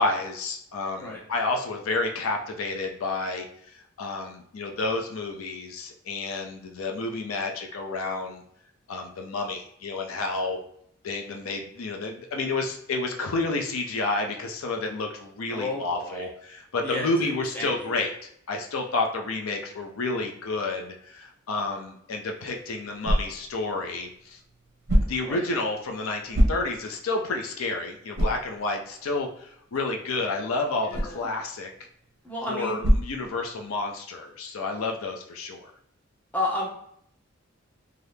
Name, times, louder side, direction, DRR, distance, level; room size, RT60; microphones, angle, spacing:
voice 1, 0.0-8.4 8.9-10.6 11.0-24.4 25.0-31.7 32.4-35.7, left 3 dB, 85° left, 3 dB, 0.5 m, -30 dB
voice 2, 15.5-16.2 16.8-17.9 25.3-25.4 30.8-31.3 32.2-32.8 36.3-36.7, left 2 dB, 10° left, -5 dB, 0.7 m, -32 dB
sound 1, 22.2-33.9, equal, 50° right, 0.6 m, -30 dB
2.7 x 2.4 x 3.3 m, 0.69 s
head